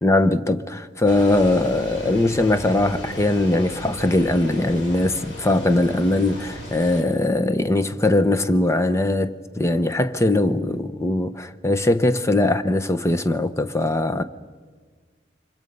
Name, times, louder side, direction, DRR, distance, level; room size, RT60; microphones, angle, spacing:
voice 1, 0.0-14.2, left 1 dB, 15° left, 0.8 m, -21 dB
sound 1, 1.1-7.0, equal, 80° left, 4.9 m, -36 dB
29.5 x 24.5 x 5.3 m
head